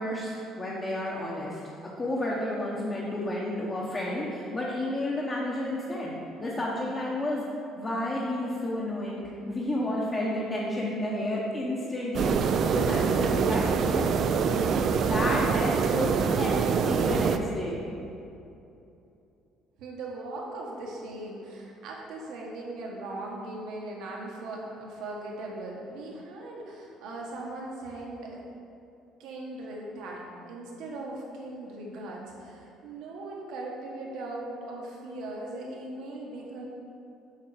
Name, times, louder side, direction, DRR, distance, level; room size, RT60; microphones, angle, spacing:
voice 1, 0.0-1.6 2.0-7.4 7.8-17.8, left 1 dB, 20° left, -5 dB, 0.9 m, -31 dB
sound 1, 12.1-17.4, right 6 dB, 50° right, 0.4 m, -25 dB
voice 2, 19.8-28.4 29.2-36.7, right 2 dB, 75° right, -2 dB, 1.6 m, -39 dB
7.4 x 5.8 x 5.1 m, 2.7 s
cardioid pair, 145°, 0 cm